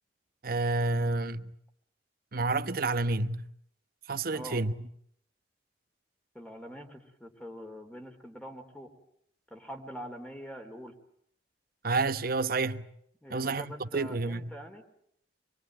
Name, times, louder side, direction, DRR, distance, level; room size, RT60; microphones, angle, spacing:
voice 1, 0.4-1.5 2.3-3.4 4.1-4.7 11.8-12.8 13.3-14.5, right 3 dB, 55° right, 1.0 m, -29 dB
voice 2, 4.3-4.6 6.3-8.9 9.5-11.0 13.2-14.8, equal, 5° left, 3.5 m, -44 dB
25.5 x 22.5 x 8.8 m
head